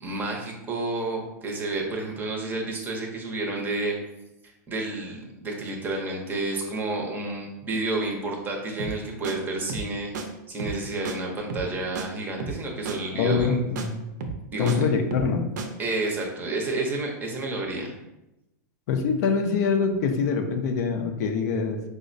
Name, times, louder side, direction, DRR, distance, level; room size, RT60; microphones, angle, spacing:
voice 1, 0.0-4.0 4.7-10.1 10.5-13.6 14.5-14.8 15.8-17.9, right 2 dB, 20° right, 0 dB, 0.6 m, -30 dB
sound 1, 8.8-9.0 9.2-9.4 9.7-9.9 10.1-10.3 10.6-10.8 11.1-11.2 11.5-11.7 12.0-12.1 12.4-12.6 12.9-13.0 13.3-13.5 13.8-13.9 14.2-14.8 15.1-15.3 15.6-15.7, right 4 dB, 75° right, 0.5 m, -32 dB
voice 2, 13.1-14.0 14.6-15.4 18.9-21.8, left 5 dB, 60° left, 4 dB, 0.5 m, -24 dB
4.8 x 2.1 x 2.6 m, 0.91 s
supercardioid pair, 140°, 10 cm